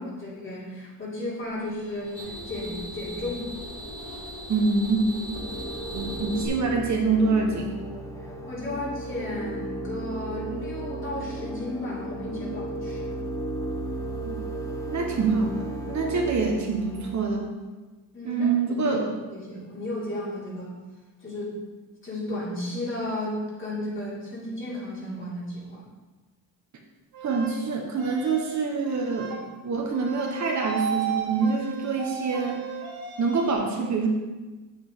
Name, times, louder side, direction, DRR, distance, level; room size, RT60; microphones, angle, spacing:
voice 1, 0.0-3.5 8.2-13.2 18.1-18.5 18.8-19.0 19.3-20.8 21.2-21.6 22.0-25.8, left 1 dB, 35° left, -7 dB, 3.1 m, -34 dB
sound 1, 1.6-6.5, equal, 85° left, 2.9 m, -38 dB
voice 2, 4.5-5.0 5.9-7.7 14.2-14.4 14.9-17.5 18.2-19.0 27.2-29.3 29.6-32.7 33.2-34.1, right 4 dB, 50° right, 1 dB, 1.3 m, -25 dB
sound 2, 5.3-17.3, right 1 dB, 10° left, 0.8 m, -34 dB
sound 3, 27.1-27.5 28.0-28.5 28.8-29.4 29.9-33.5, right 6 dB, 75° right, 1.7 m, -34 dB
8.7 x 8.1 x 3.7 m, 1.2 s
cardioid pair, 145°, 37 cm